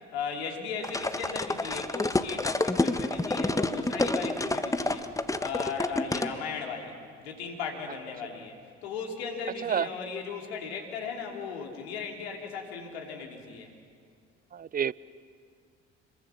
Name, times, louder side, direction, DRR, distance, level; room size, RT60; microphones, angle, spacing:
voice 1, 0.1-5.0 5.4-6.9 7.2-13.7, left 5 dB, 80° left, 2 dB, 2.9 m, -37 dB
sound 1, 0.8-6.3, left 2 dB, 10° left, 1.2 m, -28 dB
voice 2, 14.5-14.9, right 8 dB, 30° right, 21 dB, 0.6 m, -28 dB
27.0 x 21.5 x 7.0 m, 2.1 s
hypercardioid pair, 50°, 31 cm